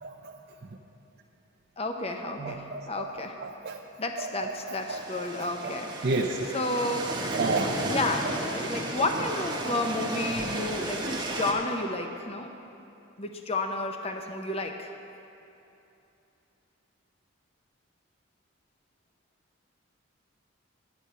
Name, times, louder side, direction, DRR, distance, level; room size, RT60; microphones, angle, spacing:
voice 1, 0.0-0.3 2.4-3.1 3.4-3.8 4.2-5.0 6.0-6.4 7.3-7.7 8.2-8.3 11.1-11.2, right 3 dB, 50° right, 1 dB, 0.6 m, -31 dB
voice 2, 1.8-3.4 4.0-6.1 6.5-7.2 7.9-12.5 13.2-14.9, left 2 dB, 30° left, 5 dB, 0.6 m, -31 dB
sound 1, 4.7-11.5, right 1 dB, 20° right, 0.9 m, -33 dB
10.5 x 9.4 x 5.6 m, 2.8 s
head